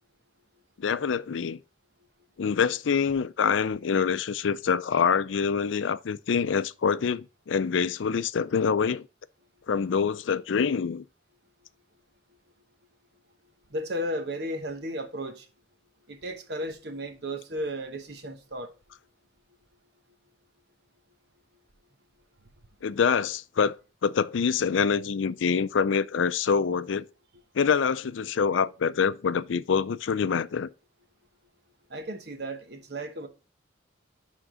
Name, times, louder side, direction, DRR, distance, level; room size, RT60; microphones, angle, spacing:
voice 1, 0.8-1.6 2.4-9.0 9.7-11.0 22.8-23.7 24.0-27.1 27.5-30.7, left 6 dB, 80° left, 0.4 m, -25 dB
voice 2, 13.7-15.5 16.1-18.7 31.9-33.3, equal, 55° right, 1.1 m, -34 dB
11.0 x 3.7 x 3.7 m
head